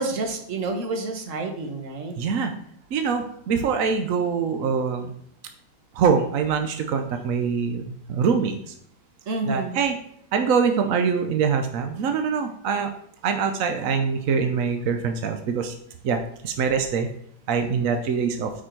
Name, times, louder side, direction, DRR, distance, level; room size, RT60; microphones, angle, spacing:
voice 1, 0.0-2.1 9.3-9.8, right 3 dB, 45° right, 5 dB, 1.2 m, -29 dB
voice 2, 2.2-2.5 2.9-5.1 5.9-8.7 9.5-9.9 10.3-12.9 13.2-15.7 16.0-16.2 16.4-17.1 17.5-18.5, right 6 dB, 75° right, 6 dB, 0.7 m, -24 dB
8.3 x 5.0 x 4.5 m, 0.66 s
omnidirectional pair, 2.3 m